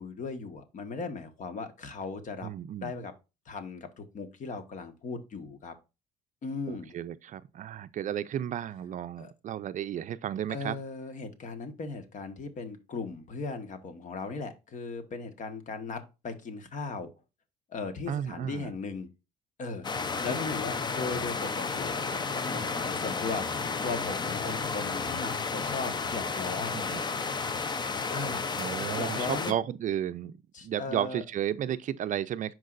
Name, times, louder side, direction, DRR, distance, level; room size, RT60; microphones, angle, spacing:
voice 1, 0.0-2.5 2.8-3.1 3.4-5.7 6.4-6.9 9.2-9.3 10.5-17.1 17.7-19.1 19.6-23.5 23.8-27.3 28.1-29.5 30.5-31.2, left 4 dB, 50° left, 1.5 m, -37 dB
voice 2, 2.4-2.9 6.7-10.8 18.1-18.7 26.7-27.0 28.6-32.5, right 10 dB, 50° right, 0.5 m, -33 dB
sound 1, 19.8-29.5, left 4 dB, 25° left, 0.6 m, -32 dB
Crowd, 21.5-28.0, right 1 dB, 10° left, 2.9 m, -55 dB
10.5 x 4.6 x 2.5 m
cardioid pair, 110°, 17 cm